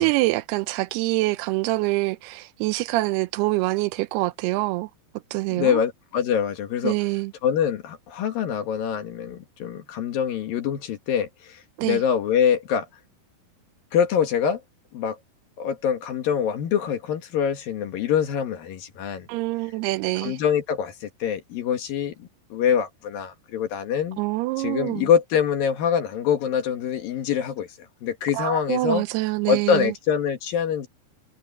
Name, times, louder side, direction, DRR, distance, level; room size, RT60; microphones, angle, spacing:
voice 1, 0.0-4.9 5.3-5.8 6.8-7.3 11.8-12.0 19.3-20.4 24.2-25.1 28.3-29.9, right 20 dB, 80° right, 2.5 m, -25 dB
voice 2, 5.6-7.0 7.4-12.9 13.9-14.6 14.9-15.2 15.6-19.3 20.2-24.2 24.6-29.0 29.5-30.9, left 8 dB, 65° left, 3.2 m, -25 dB
omnidirectional pair, 4.8 m